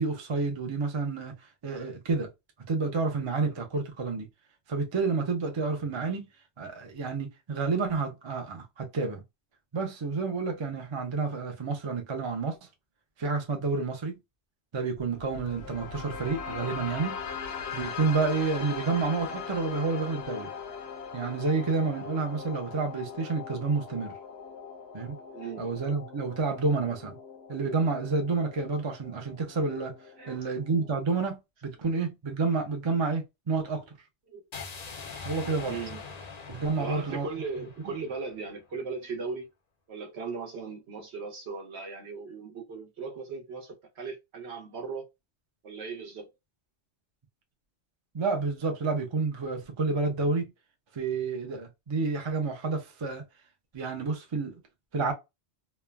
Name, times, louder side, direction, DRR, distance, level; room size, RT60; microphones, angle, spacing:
voice 1, 0.0-2.3 2.7-4.3 4.7-6.3 6.6-9.2 9.7-12.7 13.2-14.2 14.7-17.2 17.7-20.5 21.1-24.1 24.9-25.2 25.6-27.2 27.5-29.9 30.3-33.8 35.2-35.8 36.5-37.3 48.1-50.5 50.9-53.2 53.7-54.6 54.9-55.1, right 4 dB, 35° right, 0.5 m, -29 dB
sound 1, 15.0-31.0, left 6 dB, 70° left, 0.9 m, -40 dB
voice 2, 25.3-25.7 30.2-30.5 34.3-34.4 35.3-36.0 36.8-39.5 39.9-45.1 45.6-46.3, right 4 dB, 70° right, 1.1 m, -38 dB
sound 2, 34.5-38.6, left 4 dB, 45° left, 0.6 m, -43 dB
3.1 x 2.1 x 2.2 m
omnidirectional pair, 1.2 m